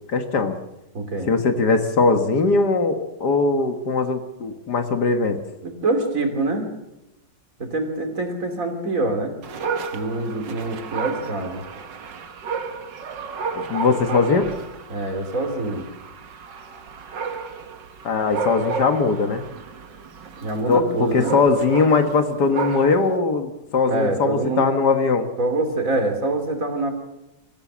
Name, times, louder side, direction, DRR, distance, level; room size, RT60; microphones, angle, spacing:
voice 1, 0.1-0.6 1.3-5.4 13.5-14.5 18.0-19.4 20.7-25.3, left 4 dB, 65° left, 7 dB, 2.0 m, -20 dB
voice 2, 0.9-1.3 5.6-6.7 7.6-9.4 9.9-11.6 14.9-15.9 20.4-21.3 23.9-24.7 25.4-26.9, right 2 dB, 45° right, 5 dB, 3.3 m, -25 dB
Dog, 9.4-23.2, right 5 dB, 80° right, 2.1 m, -32 dB
24.0 x 14.5 x 7.4 m, 0.93 s
omnidirectional pair, 1.9 m